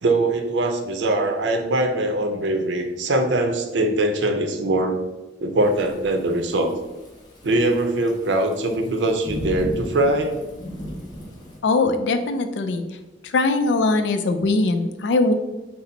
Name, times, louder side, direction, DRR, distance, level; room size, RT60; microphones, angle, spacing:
voice 1, 0.0-5.0 5.4-6.8 7.4-10.4, right 2 dB, 85° right, 5 dB, 0.6 m, -22 dB
Thunderstorm / Rain, 5.6-11.6, equal, 25° left, 0.8 m, -36 dB
voice 2, 11.6-12.8 13.2-15.3, left 3 dB, 80° left, 8 dB, 0.4 m, -21 dB
4.2 x 2.0 x 3.9 m, 1.1 s
head